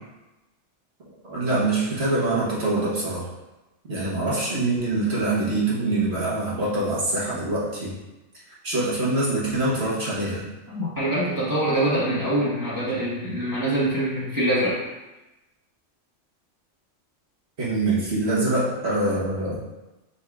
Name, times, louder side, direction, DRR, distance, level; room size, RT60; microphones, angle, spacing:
voice 1, 1.2-3.2 3.9-7.9 8.6-10.4 17.6-19.6, right 2 dB, 60° right, -8 dB, 1.6 m, -24 dB
voice 2, 10.7-14.8, right 1 dB, 15° right, -10 dB, 1.1 m, -24 dB
5.5 x 2.7 x 3.5 m, 1.0 s
omnidirectional pair, 1.2 m